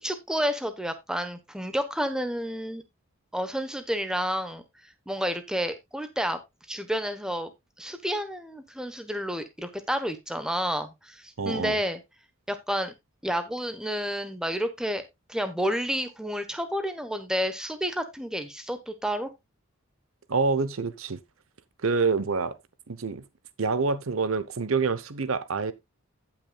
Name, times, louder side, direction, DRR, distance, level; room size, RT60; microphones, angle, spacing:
voice 1, 0.0-2.8 3.3-4.6 5.1-6.4 6.7-7.5 7.8-12.0 12.5-12.9 13.2-15.0 15.3-19.3, equal, 5° right, 1.0 m, -30 dB
voice 2, 11.4-11.8 20.3-21.2 21.8-22.6 22.9-23.2 23.6-25.7, right 4 dB, 85° right, 0.9 m, -27 dB
16.5 x 6.0 x 2.3 m
head